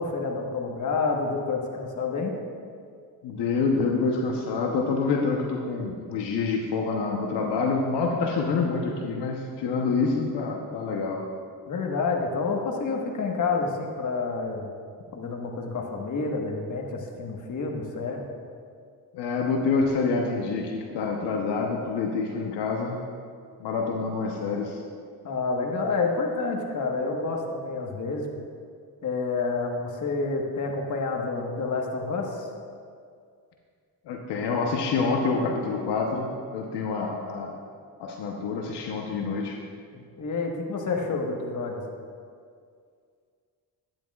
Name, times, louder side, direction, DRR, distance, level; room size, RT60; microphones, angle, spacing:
voice 1, 0.0-2.3 11.7-14.7 15.1-18.3 25.2-28.3 29.0-32.5 39.9-41.8, left 4 dB, 45° left, 1 dB, 1.4 m, -29 dB
voice 2, 3.2-11.2 19.1-23.0 23.6-24.8 34.1-37.6 38.0-39.6, left 4 dB, 80° left, 1 dB, 1.0 m, -27 dB
12.0 x 9.8 x 2.4 m, 2.2 s
cardioid pair, 90°, 40 cm